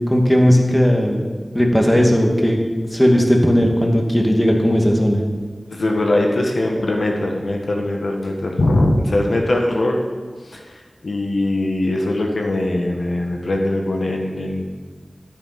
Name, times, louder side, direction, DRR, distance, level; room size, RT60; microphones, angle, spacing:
voice 1, 0.1-1.3 1.5-2.6 2.9-5.2, equal, 15° left, 1 dB, 2.3 m, -16 dB
voice 2, 5.7-10.0 10.4-14.6, left 1 dB, 85° left, 1 dB, 1.6 m, -21 dB
12.5 x 8.9 x 6.1 m, 1.4 s
wide cardioid pair, 50°, 0 cm